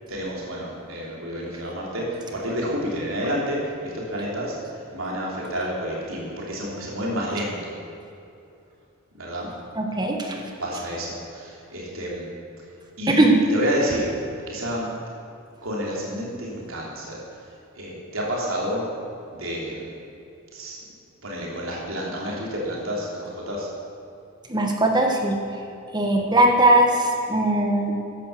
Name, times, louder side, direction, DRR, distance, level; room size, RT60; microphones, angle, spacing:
voice 1, 0.1-7.8 9.2-9.5 10.6-12.2 13.0-13.2 13.5-14.1 14.5-14.9 15.6-18.9 19.3-19.9 20.5-20.8 21.2-23.7, equal, 70° right, -3 dB, 3.5 m, -29 dB
voice 2, 9.7-10.4 13.1-13.4 24.5-25.4 25.9-27.9, right 1 dB, 20° right, 2 dB, 1.7 m, -19 dB
14.5 x 10.5 x 7.0 m, 2.6 s
head